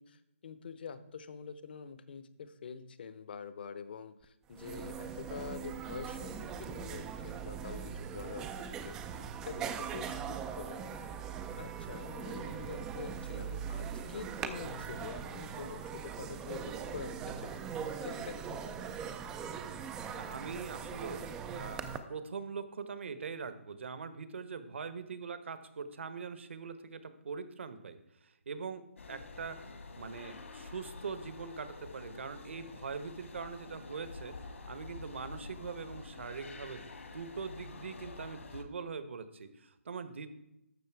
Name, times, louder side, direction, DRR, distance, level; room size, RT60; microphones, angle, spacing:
voice 1, 0.0-8.4 8.8-10.9 11.6-17.1 17.4-18.9, left 6 dB, 45° left, 13 dB, 0.8 m, -46 dB
sound 1, 4.2-4.3 4.5-22.0, right 7 dB, 5° right, 0.3 m, -41 dB
voice 2, 20.1-21.2 21.5-34.3 34.7-40.3, right 5 dB, 55° right, 11 dB, 1.1 m, -42 dB
sound 2, 29.0-38.6, left 3 dB, 70° left, 1.6 m, -48 dB
12.0 x 7.1 x 4.6 m, 0.84 s
hypercardioid pair, 165°, 8 cm